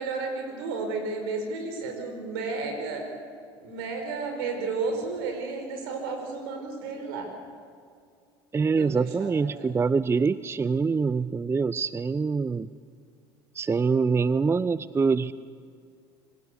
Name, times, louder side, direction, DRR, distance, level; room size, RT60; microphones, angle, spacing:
voice 1, 0.0-3.0 3.6-7.3 8.7-9.5, right 4 dB, 75° right, 4 dB, 5.1 m, -32 dB
voice 2, 8.5-12.7 13.5-15.3, right 5 dB, 20° right, 17 dB, 0.5 m, -25 dB
25.0 x 15.5 x 8.3 m, 2.2 s
hypercardioid pair, 70°, 13 cm